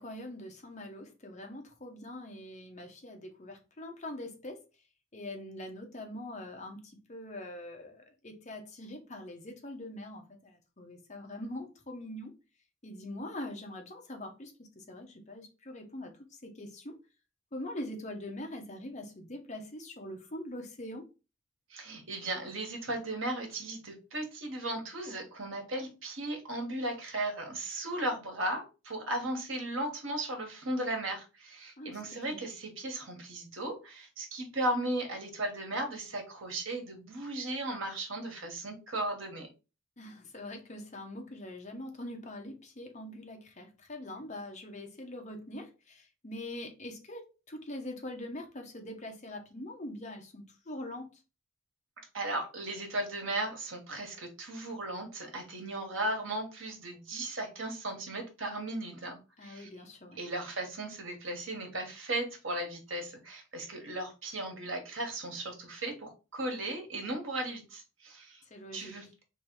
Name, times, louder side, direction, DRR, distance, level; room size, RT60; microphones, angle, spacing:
voice 1, 0.0-4.6 5.1-12.3 12.8-16.1 16.4-16.9 17.5-21.1 31.8-32.4 40.0-51.1 59.4-60.2 68.5-69.0, left 1 dB, 35° left, 1.0 m, -43 dB
voice 2, 21.7-39.5 52.1-59.7 60.2-68.4 68.7-69.2, right 1 dB, 70° right, 1.5 m, -36 dB
3.4 x 3.2 x 4.7 m
head